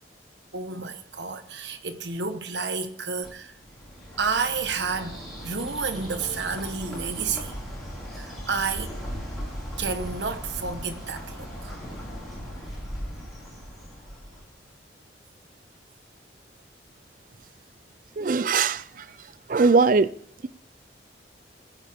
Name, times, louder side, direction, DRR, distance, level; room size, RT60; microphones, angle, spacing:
voice 1, 0.5-3.5 4.2-5.1 5.4-7.5 8.2-8.9 9.8-11.8, right 5 dB, 70° right, 1.2 m, -30 dB
Bird, 3.2-14.6, equal, ahead, 5.1 m, -38 dB
voice 2, 18.2-18.8 19.5-20.1, right 4 dB, 45° right, 0.4 m, -20 dB
20.0 x 10.0 x 3.6 m
head